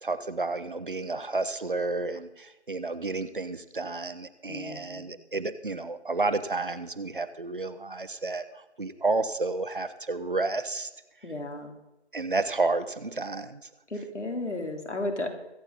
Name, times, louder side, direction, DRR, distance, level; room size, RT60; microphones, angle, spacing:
voice 1, 0.0-8.4 8.8-10.9 12.1-13.6, right 3 dB, 50° right, 12 dB, 1.0 m, -31 dB
voice 2, 4.5-5.1 11.2-11.8 13.9-15.3, left 2 dB, 90° left, 3 dB, 3.6 m, -34 dB
23.5 x 8.7 x 4.1 m, 0.96 s
figure-of-eight pair, 170°, 34 cm